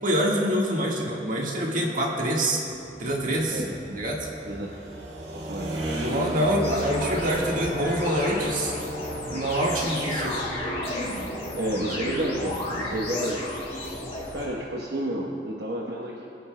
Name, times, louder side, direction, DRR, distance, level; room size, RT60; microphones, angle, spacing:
voice 1, 0.0-2.6 3.0-3.6 3.9-4.3 6.0-8.7 9.3-10.4, right 1 dB, 50° right, -2 dB, 1.6 m, -25 dB
sound 1, 2.6-14.2, equal, 85° right, 1.9 m, -36 dB
voice 2, 3.5-4.0 4.4-4.7 5.3-5.8 11.5-13.5 14.3-16.3, right 1 dB, 65° right, -3 dB, 1.0 m, -31 dB
sound 2, 6.6-14.5, left 1 dB, 35° left, 2.7 m, -33 dB
22.5 x 9.4 x 2.2 m, 2.7 s
head